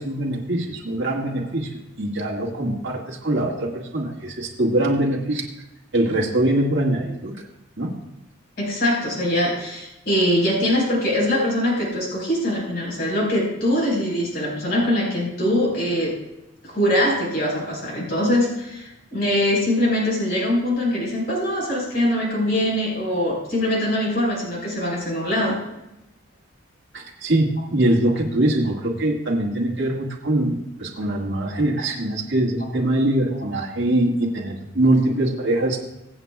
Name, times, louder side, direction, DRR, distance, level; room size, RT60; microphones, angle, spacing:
voice 1, 0.0-1.7 2.0-5.4 5.9-7.3 7.8-7.9 26.9-35.8, right 1 dB, 60° right, -3 dB, 2.0 m, -23 dB
voice 2, 8.6-16.2 16.6-25.6, left 1 dB, 50° left, -3 dB, 4.5 m, -22 dB
23.5 x 8.0 x 2.4 m, 0.93 s
head